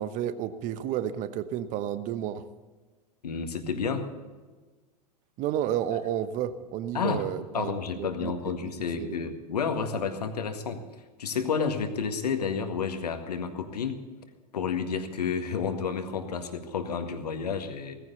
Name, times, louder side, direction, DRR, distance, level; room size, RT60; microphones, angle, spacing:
voice 1, 0.0-2.4 5.4-8.3 8.6-8.7 9.0-9.2, right 10 dB, 40° right, 12 dB, 1.0 m, -31 dB
voice 2, 3.2-4.1 6.9-7.2 7.5-10.8 11.2-14.0 14.5-18.0, left 6 dB, 70° left, 7 dB, 1.8 m, -30 dB
17.5 x 15.0 x 4.1 m, 1.3 s
figure-of-eight pair, 85°, 21 cm